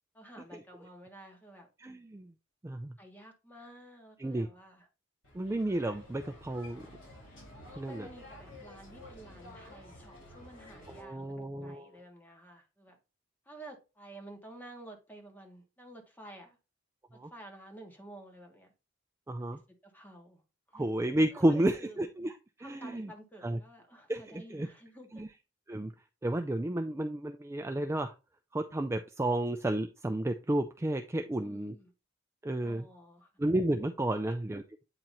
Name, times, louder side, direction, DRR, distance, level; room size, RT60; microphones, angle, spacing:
voice 1, 0.1-1.7 3.0-4.9 7.7-13.0 13.4-16.6 17.1-18.7 19.4-20.4 20.7-20.9 21.3-22.1 22.6-25.3 31.3-31.9 32.6-33.3 34.1-34.3, right 1 dB, 10° left, 3 dB, 1.4 m, -52 dB
voice 2, 1.8-2.3 2.6-2.9 4.2-4.5 5.3-6.8 7.8-8.1 11.0-11.9 17.1-17.3 19.3-19.6 20.7-22.3 22.6-23.1 23.4-23.6 24.1-24.7 25.2-25.3 25.7-25.9 26.2-28.1 28.5-31.7 32.4-32.9 33.4-34.6, right 1 dB, 15° right, 6 dB, 0.4 m, -31 dB
sound 1, 5.2-11.0, left 1 dB, 75° left, 3.7 m, -51 dB
8.7 x 2.9 x 4.0 m, 0.30 s
head